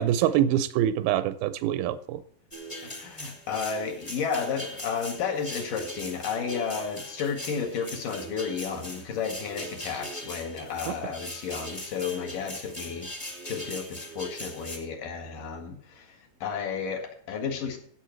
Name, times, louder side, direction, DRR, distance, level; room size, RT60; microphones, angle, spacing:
voice 1, 0.0-2.2 10.9-11.0, right 11 dB, 90° right, 2.5 m, -25 dB
sound 1, 2.5-14.8, equal, 10° left, 1.4 m, -40 dB
voice 2, 2.8-13.1 13.4-17.8, left 6 dB, 65° left, 3.3 m, -32 dB
16.0 x 7.6 x 4.5 m
omnidirectional pair, 4.2 m